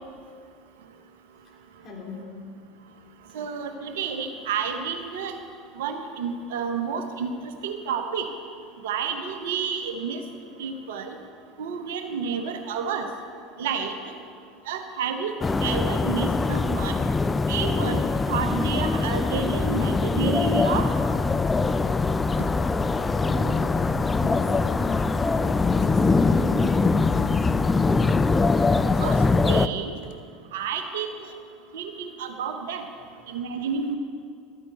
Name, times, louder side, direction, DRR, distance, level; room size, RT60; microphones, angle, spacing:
voice 1, 1.8-2.5 22.6-22.7 23.2-25.4 25.7-27.8, left 1 dB, 40° left, -2 dB, 3.4 m, -38 dB
voice 2, 3.3-5.3 5.8-7.3 7.6-8.2 8.8-10.2 10.6-11.1 11.6-13.1 13.6-13.9 14.7-15.3 15.6-16.9 17.5-20.9 29.0-29.1 29.5-29.9 30.5-31.1 31.7-32.8 33.3-34.0, right 6 dB, 65° right, 7 dB, 1.0 m, -30 dB
sound 1, 15.4-29.7, left 3 dB, 20° left, 0.4 m, -23 dB
13.5 x 13.0 x 4.1 m, 2.3 s
figure-of-eight pair, 70°, 0 cm